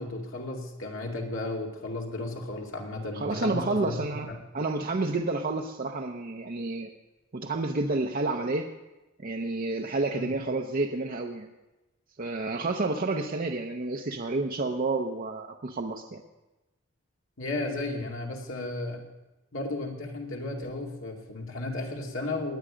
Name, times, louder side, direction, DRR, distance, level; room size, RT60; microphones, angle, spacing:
voice 1, 0.0-4.4 10.1-10.3 17.4-19.1 19.5-22.6, left 2 dB, 75° left, 0 dB, 2.4 m, -34 dB
voice 2, 3.1-4.3 4.5-6.9 7.3-8.7 9.2-11.5 12.2-16.2, right 3 dB, 45° right, 2 dB, 0.7 m, -30 dB
18.5 x 10.0 x 5.1 m, 1.0 s
head